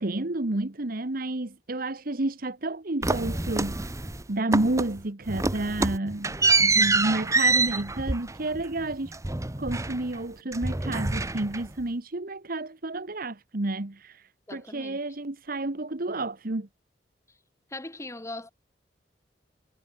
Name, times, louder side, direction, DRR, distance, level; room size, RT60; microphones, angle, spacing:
voice 1, 0.0-3.9 4.3-9.1 9.6-16.7, right 2 dB, 55° right, 1.4 m, -30 dB
sound 1, 3.0-4.2 4.5-5.0 5.3-10.2 10.5-11.8, right 3 dB, 20° right, 1.0 m, -26 dB
voice 2, 14.5-15.0 17.7-18.5, left 2 dB, 15° left, 1.5 m, -39 dB
head